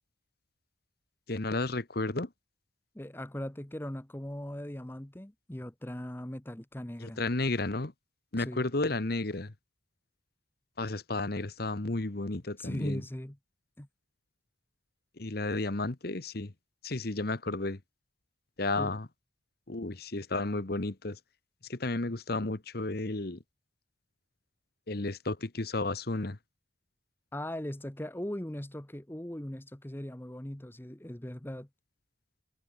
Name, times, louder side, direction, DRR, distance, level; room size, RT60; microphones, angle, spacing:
voice 1, 1.3-2.3 7.0-7.9 8.3-9.5 10.8-13.0 15.2-16.5 16.8-17.8 18.6-19.1 19.7-21.2 21.7-23.4 24.9-26.4, left 2 dB, 50° left, 1.2 m, -32 dB
voice 2, 2.9-7.2 8.4-8.7 12.6-13.4 13.8-13.9 18.8-19.0 27.3-31.7, left 1 dB, 10° left, 0.9 m, -39 dB
head